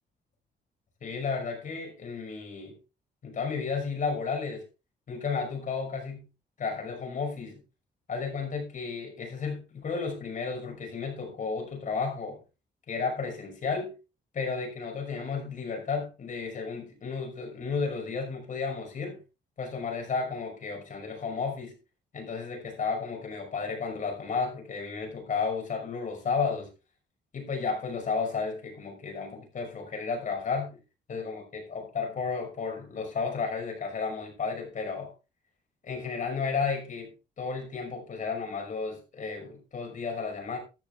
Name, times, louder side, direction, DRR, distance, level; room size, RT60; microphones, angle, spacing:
voice 1, 1.0-2.8 3.2-4.6 5.1-6.3 6.6-7.6 8.1-12.4 12.9-14.0 14.3-19.2 19.6-21.8 22.1-26.7 27.3-30.8 31.1-35.1 35.8-40.6, left 5 dB, 45° left, 2 dB, 5.9 m, -33 dB
14.0 x 11.0 x 3.5 m, 0.29 s
cardioid pair, 150°, 18 cm